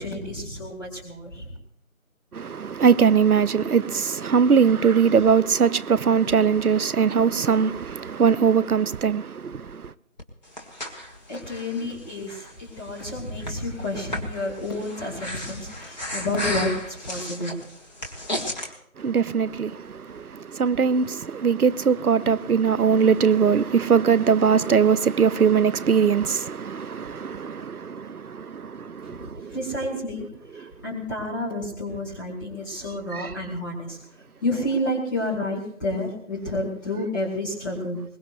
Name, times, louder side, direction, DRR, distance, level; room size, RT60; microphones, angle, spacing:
voice 1, 0.0-1.5 11.3-17.6 29.0-30.3 30.5-34.0 34.4-38.0, left 1 dB, 15° left, 2.1 m, -30 dB
voice 2, 2.3-9.9 19.0-29.6 30.6-30.7 33.1-33.3, right 6 dB, 85° right, 0.7 m, -21 dB
Breathing, 10.2-18.7, left 1 dB, 30° left, 1.6 m, -35 dB
21.5 x 20.0 x 2.6 m
figure-of-eight pair, 165°, 43 cm